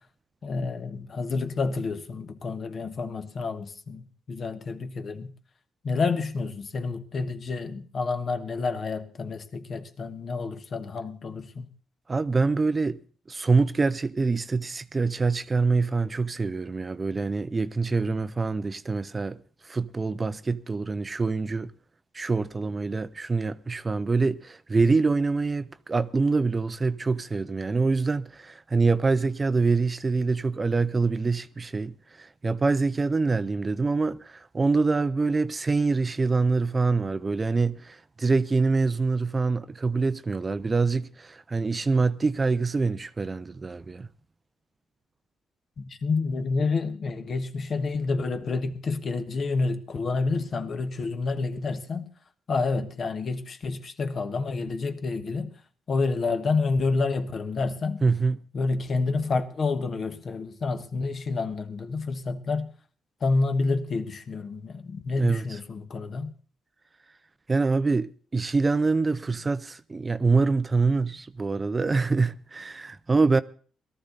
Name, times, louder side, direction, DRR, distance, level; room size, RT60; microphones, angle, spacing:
voice 1, 0.4-5.3 5.8-11.7 45.8-52.0 52.5-55.5 55.9-58.0 58.5-62.7 63.2-66.3, left 4 dB, 50° left, 1.4 m, -29 dB
voice 2, 12.1-13.0 13.3-19.4 19.6-21.7 22.1-44.1 58.0-58.4 65.2-65.6 67.5-73.4, right 4 dB, 30° right, 0.6 m, -25 dB
17.5 x 13.0 x 4.0 m
cardioid pair, 80°, 0 cm